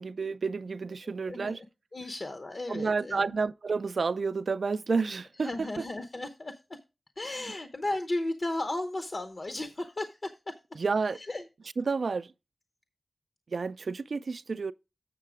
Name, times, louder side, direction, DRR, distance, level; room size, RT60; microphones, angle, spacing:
voice 1, 0.0-1.6 2.7-5.5 10.8-11.2 11.8-12.3 13.5-14.7, right 4 dB, 75° right, 0.3 m, -30 dB
voice 2, 1.0-1.7 1.9-3.2 5.4-6.6 7.2-10.6 11.1-11.4, left 2 dB, 50° left, 0.7 m, -35 dB
7.3 x 6.6 x 4.8 m
wide cardioid pair, 65°, 0 cm